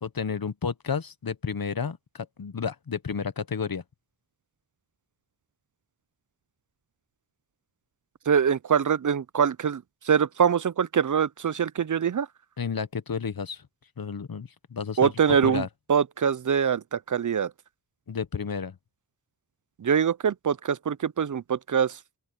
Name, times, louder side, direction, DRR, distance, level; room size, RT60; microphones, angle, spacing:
voice 1, 0.0-3.8 12.6-13.6 14.0-15.7 18.1-18.8, left 6 dB, 70° left, 1.0 m, -31 dB
voice 2, 8.3-12.3 15.0-17.5 19.8-22.0, right 7 dB, 55° right, 0.5 m, -24 dB
open air
wide cardioid pair, 55°, 36 cm